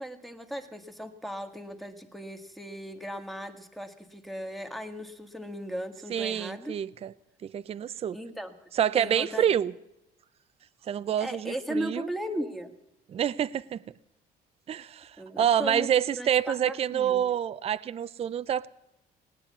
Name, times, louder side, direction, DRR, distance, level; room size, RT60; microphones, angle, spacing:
voice 1, 0.0-6.8 8.1-8.5 8.9-9.5 11.2-12.7 15.2-15.9 16.2-17.2, equal, ahead, 1.6 m, -37 dB
voice 2, 6.1-7.1 7.4-8.2 8.7-9.7 10.9-12.1 13.1-13.8 14.7-15.1 15.4-18.7, right 9 dB, 35° right, 0.5 m, -27 dB
18.0 x 9.8 x 8.3 m
cardioid pair, 110°, 17 cm